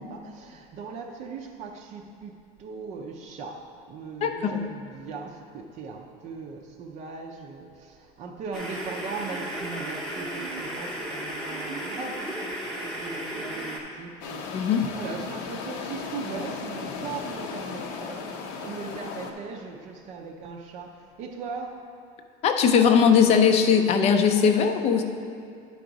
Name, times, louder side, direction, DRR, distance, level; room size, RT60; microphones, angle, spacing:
voice 1, 0.0-2.3 2.6-14.7 14.9-21.8, right 4 dB, 40° right, 2 dB, 0.5 m, -39 dB
voice 2, 4.2-4.6 14.5-14.9 22.4-25.0, left 7 dB, 35° left, 6 dB, 0.5 m, -20 dB
sound 1, 8.5-13.8, right 1 dB, 5° left, 0.8 m, -34 dB
sound 2, 14.2-19.3, left 5 dB, 70° left, 0.8 m, -36 dB
10.5 x 4.7 x 3.9 m, 2.4 s
cardioid pair, 160°, 18 cm